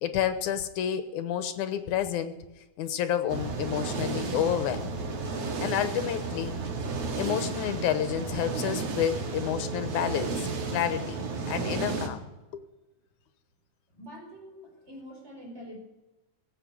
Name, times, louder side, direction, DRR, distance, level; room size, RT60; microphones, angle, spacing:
voice 1, 0.0-2.3 2.8-4.9 5.6-6.6 7.2-12.3 12.5-12.6, left 10 dB, 85° left, 10 dB, 2.5 m, -30 dB
sound 1, 3.3-12.1, right 4 dB, 60° right, 2.6 m, -33 dB
voice 2, 13.9-15.8, equal, 20° right, 0 dB, 4.7 m, -45 dB
16.5 x 8.1 x 8.6 m, 1.1 s
omnidirectional pair, 3.4 m